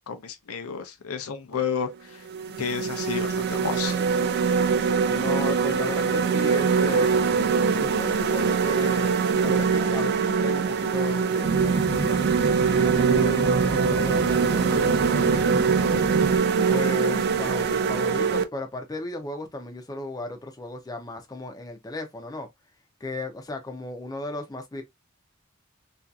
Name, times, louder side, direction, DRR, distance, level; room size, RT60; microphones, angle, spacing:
voice 1, 0.1-2.2 2.6-4.0, left 7 dB, 80° left, 0.5 m, -31 dB
sound 1, 1.5-1.7 2.3-18.4, right 5 dB, 50° right, 0.3 m, -23 dB
voice 2, 5.1-7.1 7.7-15.4 15.7-16.0 16.7-22.5 23.0-24.8, left 2 dB, 15° left, 0.5 m, -36 dB
sound 2, 11.4-16.4, right 3 dB, 85° right, 0.9 m, -28 dB
2.7 x 2.4 x 2.3 m
head